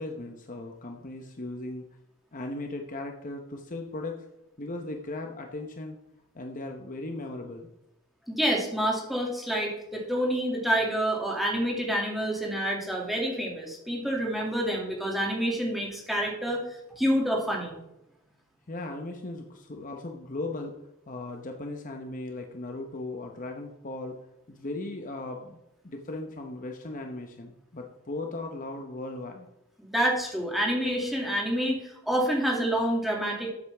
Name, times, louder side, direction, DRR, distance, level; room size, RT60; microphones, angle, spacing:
voice 1, 0.0-1.8 2.3-4.2 4.6-6.0 6.3-7.7 18.7-20.7 21.1-24.2 24.5-25.6 25.8-29.5, left 2 dB, 35° left, 3 dB, 0.9 m, -37 dB
voice 2, 8.3-16.6 17.0-17.8 29.8-33.5, equal, ahead, -2 dB, 2.3 m, -28 dB
13.5 x 8.0 x 3.5 m, 0.86 s
head